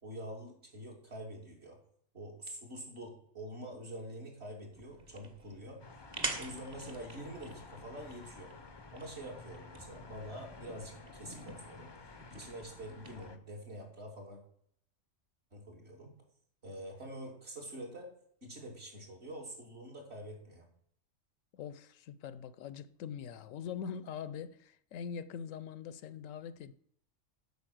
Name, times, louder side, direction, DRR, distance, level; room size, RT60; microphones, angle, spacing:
voice 1, 0.0-1.8 2.1-5.8 6.4-8.5 8.9-11.9 12.3-14.4 15.5-16.1 16.6-18.1 18.4-20.7, right 1 dB, 55° right, 2.8 m, -46 dB
sound 1, 4.7-13.3, right 2 dB, 35° right, 1.3 m, -46 dB
sound 2, 5.8-13.4, left 4 dB, 30° left, 0.5 m, -52 dB
voice 2, 21.5-26.7, left 7 dB, 80° left, 1.0 m, -43 dB
8.5 x 5.5 x 7.7 m
omnidirectional pair, 1.4 m